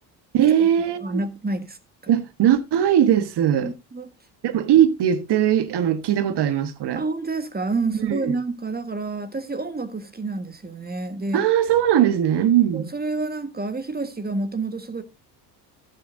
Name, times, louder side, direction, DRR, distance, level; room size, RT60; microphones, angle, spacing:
voice 1, 0.3-1.2 2.1-3.7 4.4-7.0 7.9-8.4 11.3-12.9, right 10 dB, 55° right, 1.4 m, -20 dB
voice 2, 1.0-1.8 3.6-4.1 7.0-11.4 12.7-15.0, right 3 dB, 20° right, 1.6 m, -28 dB
13.0 x 10.5 x 2.7 m
supercardioid pair, 80°, 48 cm